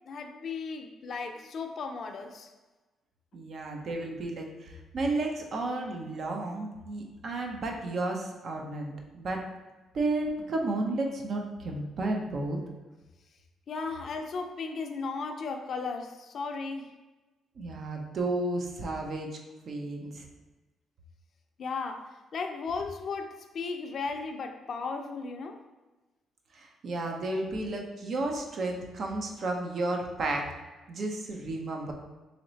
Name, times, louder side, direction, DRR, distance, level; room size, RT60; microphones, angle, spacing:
voice 1, 0.1-2.5 13.7-16.9 21.6-25.6, left 4 dB, 55° left, 5 dB, 0.4 m, -36 dB
voice 2, 3.3-9.4 9.9-12.6 17.6-19.3 19.7-20.3 26.5-30.4 30.9-31.9, right 2 dB, 55° right, 2 dB, 0.6 m, -32 dB
3.1 x 2.9 x 3.9 m, 1.2 s
cardioid pair, 90°, 0 cm